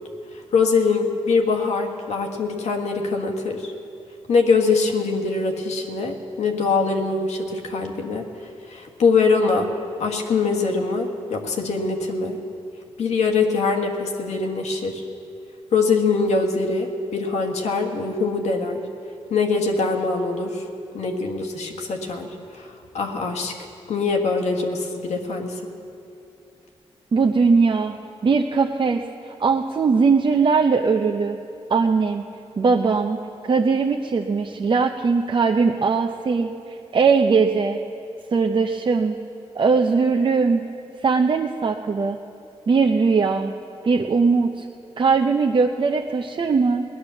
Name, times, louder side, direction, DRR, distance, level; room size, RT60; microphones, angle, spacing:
voice 1, 0.5-3.7 4.3-8.3 8.7-9.7 10.0-12.4 13.0-15.0 15.7-18.8 19.3-20.6 20.9-22.3 22.5-23.5 23.9-25.6, left 4 dB, 85° left, 2 dB, 1.6 m, -23 dB
voice 2, 27.1-27.9 28.2-31.4 31.7-32.2 32.6-33.2 33.4-37.8 38.3-39.2 39.5-40.6 41.0-42.2 42.7-43.5 43.8-44.7 45.0-46.8, right 4 dB, 45° right, 2 dB, 0.7 m, -20 dB
18.0 x 10.5 x 7.1 m, 2.6 s
cardioid pair, 70°, 11 cm